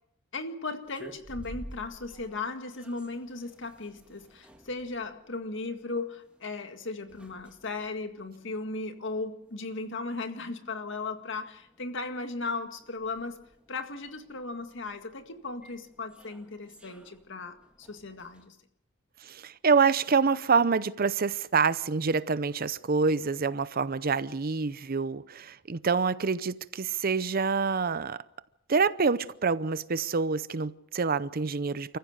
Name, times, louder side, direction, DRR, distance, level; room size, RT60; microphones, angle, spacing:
voice 1, 0.3-13.4 13.7-18.6, left 3 dB, 65° left, 1.9 m, -36 dB
sound 1, 0.8-18.5, equal, 5° right, 2.0 m, -53 dB
voice 2, 19.2-28.2 28.7-32.0, right 5 dB, 50° right, 0.7 m, -26 dB
29.0 x 15.0 x 6.6 m
head